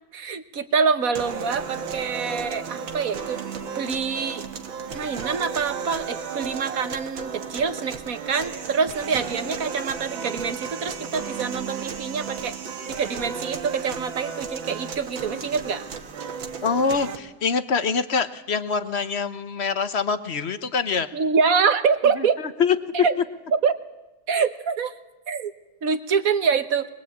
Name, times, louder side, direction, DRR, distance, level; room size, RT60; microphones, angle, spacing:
voice 1, 0.1-3.4 3.7-4.4 4.9-12.6 12.9-15.8 21.1-22.4 22.9-23.2 23.6-23.8 24.3-24.9 25.3-25.5 25.8-26.9, right 5 dB, 50° right, 10 dB, 1.4 m, -25 dB
sound 1, 1.2-17.2, right 6 dB, 70° right, 2.2 m, -34 dB
voice 2, 16.6-21.1 22.1-22.8, left 5 dB, 40° left, 11 dB, 1.0 m, -25 dB
23.0 x 21.5 x 8.7 m, 0.98 s
omnidirectional pair, 2.3 m